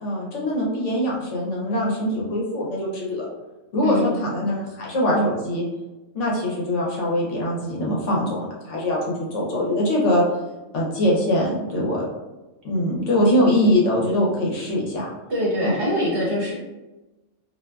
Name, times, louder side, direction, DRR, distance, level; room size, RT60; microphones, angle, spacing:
voice 1, 0.0-3.3 3.7-5.6 6.1-10.2 10.7-12.1 12.6-15.1 15.6-15.7, left 1 dB, 70° left, -4 dB, 1.1 m, -22 dB
voice 2, 15.3-16.5, equal, 55° right, -5 dB, 0.9 m, -23 dB
2.6 x 2.4 x 2.2 m, 1.1 s
omnidirectional pair, 1.3 m